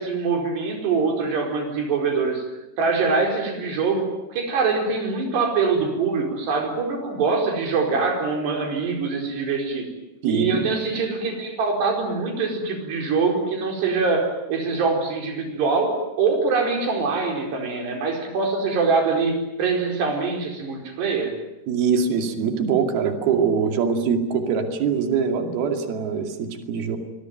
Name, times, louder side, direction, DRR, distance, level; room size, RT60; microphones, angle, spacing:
voice 1, 0.0-2.4 2.8-9.8 10.2-21.4, right 4 dB, 85° right, 3 dB, 6.9 m, -24 dB
voice 2, 10.2-10.7 21.7-27.0, right 6 dB, 70° right, 5 dB, 4.4 m, -23 dB
25.0 x 21.5 x 9.2 m, 0.95 s
omnidirectional pair, 4.7 m